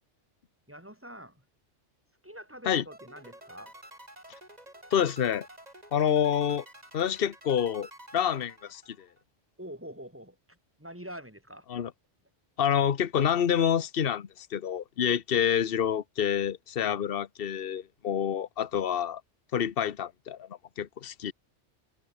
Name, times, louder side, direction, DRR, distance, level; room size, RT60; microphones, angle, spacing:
voice 1, 0.7-1.4 2.2-3.7 9.6-11.7 16.8-17.0, equal, 10° right, 4.7 m, -45 dB
sound 1, 2.9-9.2, right 1 dB, 35° right, 6.1 m, -50 dB
voice 2, 4.9-5.5 5.9-6.6 6.9-7.9 8.1-8.8 11.7-11.9 12.6-19.2 19.5-20.5 20.8-21.3, left 9 dB, 55° left, 1.1 m, -27 dB
omnidirectional pair, 1.2 m